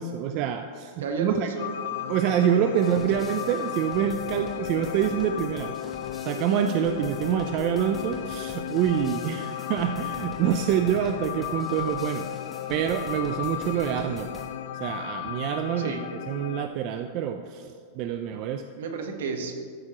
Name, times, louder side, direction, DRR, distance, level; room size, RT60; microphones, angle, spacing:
voice 1, 0.0-1.5 2.1-5.7 6.2-12.3 12.7-14.3 14.8-15.9 16.3-18.6, right 9 dB, 50° right, 7 dB, 0.4 m, -26 dB
voice 2, 1.0-1.8 3.1-3.2 15.8-16.1 18.8-19.8, right 4 dB, 80° right, 4 dB, 1.1 m, -32 dB
sound 1, 1.6-16.7, left 10 dB, 70° left, 0.3 m, -35 dB
sound 2, 2.8-14.5, left 2 dB, 15° left, 1.0 m, -45 dB
12.5 x 6.0 x 2.9 m, 2.1 s
hypercardioid pair, 125°, 0 cm